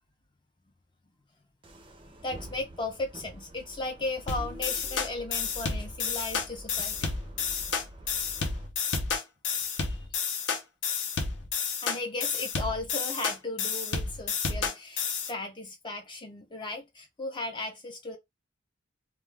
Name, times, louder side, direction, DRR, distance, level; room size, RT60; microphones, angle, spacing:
sound 1, 1.6-8.7, right 1 dB, 25° right, 0.5 m, -47 dB
voice 1, 2.2-7.1 9.7-10.1 11.8-18.2, left 2 dB, 25° left, 0.5 m, -36 dB
sound 2, 4.3-15.3, left 5 dB, 70° left, 0.6 m, -31 dB
2.3 x 2.2 x 3.3 m
head